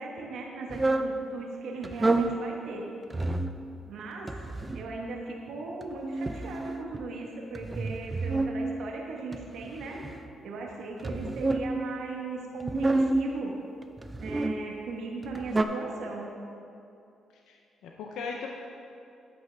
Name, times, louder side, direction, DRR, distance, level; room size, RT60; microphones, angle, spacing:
voice 1, 0.0-2.9 3.8-4.3 4.7-10.0 10.4-13.5 14.2-16.3, right 3 dB, 75° right, -1 dB, 1.2 m, -38 dB
sound 1, 0.7-1.1 1.8-2.4 3.1-3.6 4.3-4.9 5.8-7.1 7.5-8.6 9.3-10.3 11.0-11.7 12.6-13.3 14.0-14.6 15.2-15.6, right 2 dB, 20° right, 0.5 m, -29 dB
voice 2, 17.5-18.5, left 5 dB, 85° left, 1 dB, 0.6 m, -38 dB
9.5 x 8.6 x 3.4 m, 2.6 s
cardioid pair, 90°, 0 cm